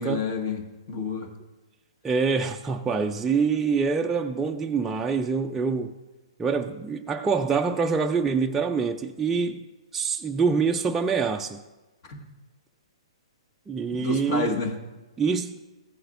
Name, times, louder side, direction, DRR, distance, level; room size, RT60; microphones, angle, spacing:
voice 1, 0.0-1.3 12.1-12.2 14.0-14.8, left 4 dB, 45° left, 1.4 m, -29 dB
voice 2, 2.0-6.0 6.4-9.6 9.9-11.6 13.7-14.6 15.2-15.6, right 5 dB, 10° right, 0.3 m, -25 dB
15.0 x 7.9 x 2.5 m
hypercardioid pair, 135°, 3 cm